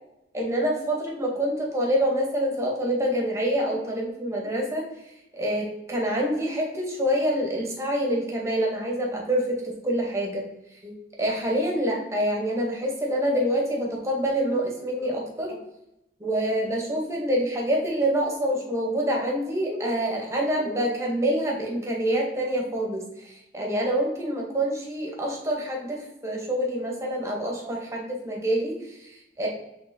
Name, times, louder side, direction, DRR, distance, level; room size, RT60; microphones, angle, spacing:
voice 1, 0.3-4.8 5.3-10.5 10.8-15.6 16.2-29.5, equal, 15° right, -1 dB, 1.0 m, -26 dB
5.3 x 3.4 x 2.7 m, 0.86 s
head